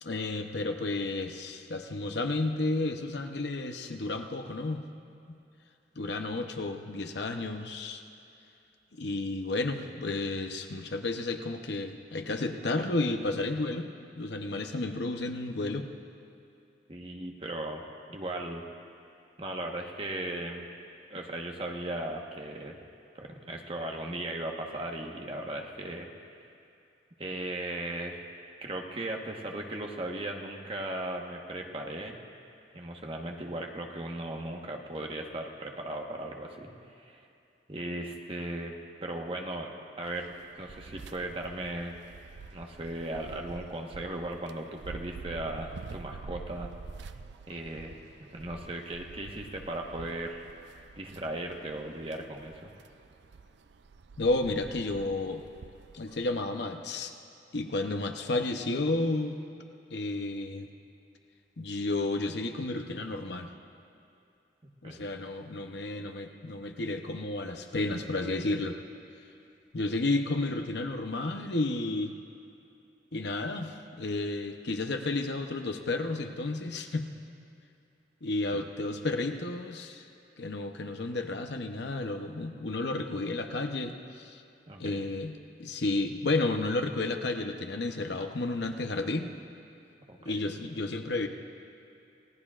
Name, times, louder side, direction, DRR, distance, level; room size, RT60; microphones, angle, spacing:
voice 1, 0.0-4.8 5.3-5.4 6.0-8.0 8.9-13.9 14.2-15.9 54.2-55.4 55.9-57.1 57.5-59.4 59.9-60.7 61.6-63.5 64.8-68.8 69.7-72.1 73.1-77.1 78.2-80.1 80.4-84.4 84.8-89.3 90.2-91.3, left 2 dB, 65° left, 5 dB, 0.9 m, -32 dB
voice 2, 16.9-17.8 18.1-18.6 19.4-20.7 21.1-22.8 23.1-26.1 27.2-28.2 28.6-32.2 32.7-37.3 37.7-38.7 39.0-40.3 40.6-41.9 42.5-46.7 47.5-48.0 48.3-50.5 51.0-52.7 64.8-65.0 78.5-78.7 84.7-85.0 90.1-90.3, right 1 dB, 30° right, 1 dB, 1.2 m, -37 dB
sound 1, 40.0-56.5, right 4 dB, 65° right, 0.4 m, -48 dB
28.5 x 17.0 x 2.5 m, 2.6 s
head